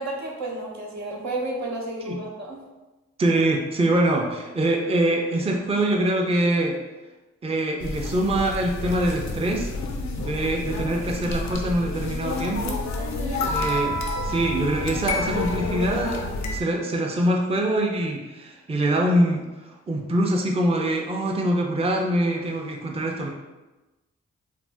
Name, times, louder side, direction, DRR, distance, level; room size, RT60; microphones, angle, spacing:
voice 1, 0.0-2.6 13.0-13.5, right 2 dB, 70° right, -1 dB, 0.7 m, -32 dB
voice 2, 3.2-6.8 7.4-9.7 10.2-12.8 13.4-23.3, right 1 dB, 20° right, 0 dB, 0.5 m, -24 dB
sound 1, 7.8-16.6, left 2 dB, 70° left, 0.5 m, -29 dB
2.5 x 2.1 x 3.3 m, 1.1 s
supercardioid pair, 40°, 29 cm